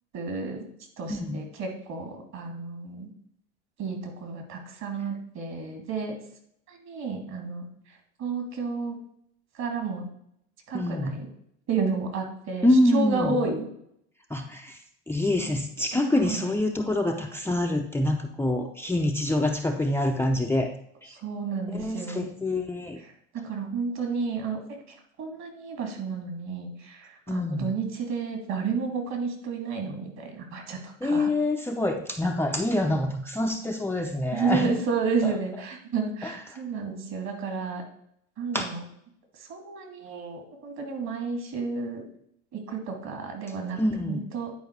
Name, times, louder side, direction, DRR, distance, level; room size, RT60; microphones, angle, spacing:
voice 1, 0.1-0.6 1.0-3.1 3.8-6.1 6.7-9.0 9.5-10.1 10.7-11.3 11.7-13.7 16.1-16.5 21.1-22.3 23.0-31.3 34.3-37.8 38.4-38.8 39.3-42.1 42.5-43.8 44.1-44.5, right 4 dB, 50° right, 3 dB, 2.8 m, -31 dB
voice 2, 1.1-1.5 10.7-11.1 12.6-13.4 14.3-14.8 15.1-20.7 21.0-21.1 21.7-23.0 27.3-27.7 31.0-34.7 35.2-35.3 36.2-36.6 38.5-38.7 43.8-44.2, left 1 dB, 5° left, 3 dB, 0.7 m, -26 dB
10.0 x 4.6 x 4.7 m, 0.72 s
hypercardioid pair, 85°, 36 cm